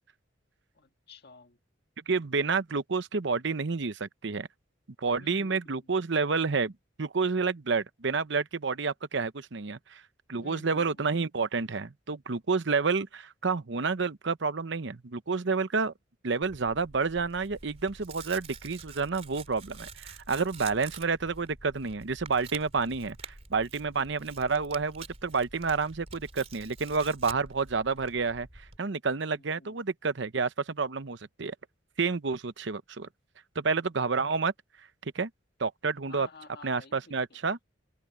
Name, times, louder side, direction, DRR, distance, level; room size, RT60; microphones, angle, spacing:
voice 1, 0.7-1.6 5.2-5.9 10.4-11.1 23.9-24.1 29.4-29.8 36.1-37.4, left 3 dB, 55° left, 1.8 m, -52 dB
voice 2, 2.1-4.5 5.0-6.7 7.0-10.0 10.3-15.9 16.2-31.5 32.0-33.1 33.5-34.5 35.1-35.3 35.6-36.3 36.6-37.6, right 4 dB, 65° right, 0.8 m, -29 dB
Tearing, 16.4-28.8, right 4 dB, 35° right, 3.2 m, -47 dB
head